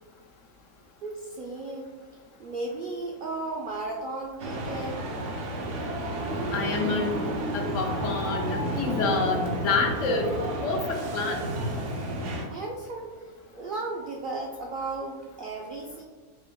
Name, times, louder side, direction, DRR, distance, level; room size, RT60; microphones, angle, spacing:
voice 1, 1.0-1.9 2.4-5.1 12.5-13.2 13.5-16.0, right 2 dB, 90° right, 0 dB, 0.4 m, -35 dB
sound 1, 4.4-12.4, right 1 dB, 65° right, 1.0 m, -31 dB
sound 2, 4.8-10.8, right 1 dB, 35° left, 0.4 m, -41 dB
voice 2, 6.5-7.2 7.5-10.3 10.6-11.4, left 4 dB, 70° left, 2 dB, 1.0 m, -28 dB
5.5 x 3.5 x 2.2 m, 1.4 s
omnidirectional pair, 1.5 m